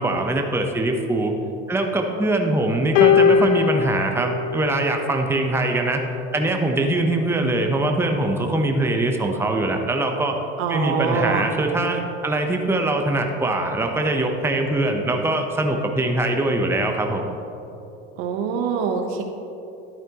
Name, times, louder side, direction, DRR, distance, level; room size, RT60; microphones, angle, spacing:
voice 1, 0.0-1.3 1.7-6.0 6.3-10.4 10.7-17.3, right 2 dB, 5° right, 3 dB, 0.9 m, -22 dB
sound 1, 3.0-5.4 6.4-6.6, left 7 dB, 80° left, 0.8 m, -20 dB
voice 2, 10.6-11.5 18.2-19.2, right 6 dB, 70° right, 4 dB, 1.1 m, -24 dB
11.5 x 8.7 x 3.0 m, 2.8 s
hypercardioid pair, 90°, 35 cm